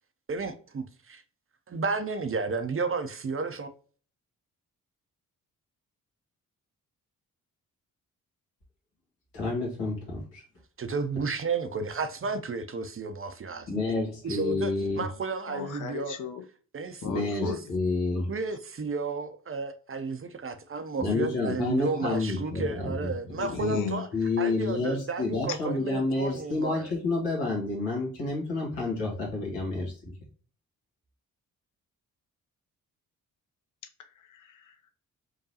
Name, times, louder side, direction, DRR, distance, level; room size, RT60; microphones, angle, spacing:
voice 1, 0.3-1.2 1.7-3.7 10.8-13.7 14.2-16.2 16.7-17.0 17.4-17.6 18.3-24.1 24.4-26.9, right 4 dB, 30° right, 0.6 m, -32 dB
voice 2, 9.3-10.4 13.7-15.0 17.0-18.3 21.0-23.1 23.6-30.1, left 3 dB, 80° left, 1.6 m, -29 dB
voice 3, 15.5-16.4 17.0-17.8 23.4-24.0 34.0-34.9, left 7 dB, 45° left, 0.8 m, -37 dB
4.6 x 2.3 x 2.8 m
hypercardioid pair, 40°, 43 cm